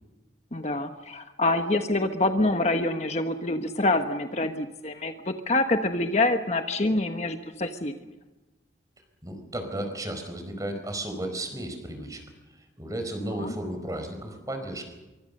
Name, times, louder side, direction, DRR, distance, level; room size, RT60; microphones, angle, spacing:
voice 1, 0.5-7.9 13.4-13.5, left 2 dB, 35° left, 6 dB, 1.2 m, -26 dB
voice 2, 9.2-12.2 12.8-15.0, right 1 dB, 20° right, 6 dB, 4.7 m, -34 dB
25.0 x 24.0 x 6.7 m, 1.1 s
head